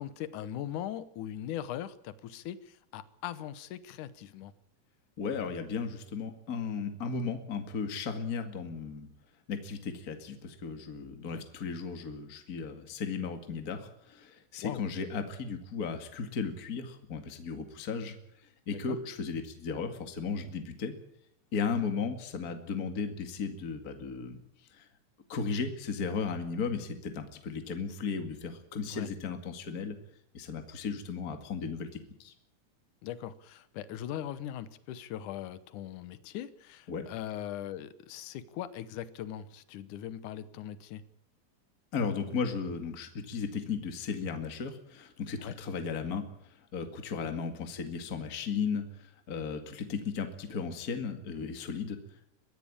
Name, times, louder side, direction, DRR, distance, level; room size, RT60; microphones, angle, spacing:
voice 1, 0.0-4.5 11.3-11.4 14.6-14.8 18.7-19.0 28.9-29.1 33.0-41.0 45.4-45.6, left 11 dB, 85° left, 14 dB, 2.5 m, -40 dB
voice 2, 5.2-9.1 9.5-18.2 18.7-20.9 21.5-24.4 24.8-24.9 25.3-30.0 30.3-32.3 36.9-37.1 41.9-46.2 46.7-48.8 49.3-52.0, left 5 dB, 35° left, 6 dB, 2.1 m, -35 dB
23.0 x 15.5 x 8.7 m, 0.73 s
omnidirectional pair, 3.5 m